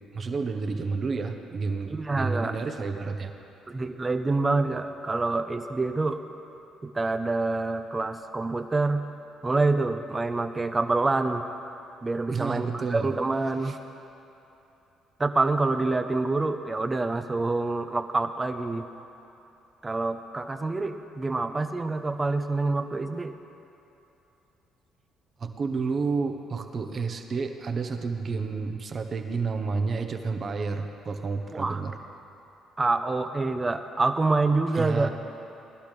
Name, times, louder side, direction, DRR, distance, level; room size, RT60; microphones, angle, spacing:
voice 1, 0.1-3.3 12.3-13.1 13.6-13.8 25.4-31.9 34.8-35.1, right 4 dB, 45° right, 5 dB, 1.1 m, -30 dB
voice 2, 1.9-2.5 3.7-6.2 6.8-9.0 9.4-11.5 12.0-13.8 15.2-18.9 19.8-23.4 31.5-31.8 32.8-35.1, right 3 dB, 25° right, 7 dB, 0.8 m, -26 dB
20.5 x 11.5 x 3.4 m, 3.0 s
supercardioid pair, 70°, 0 cm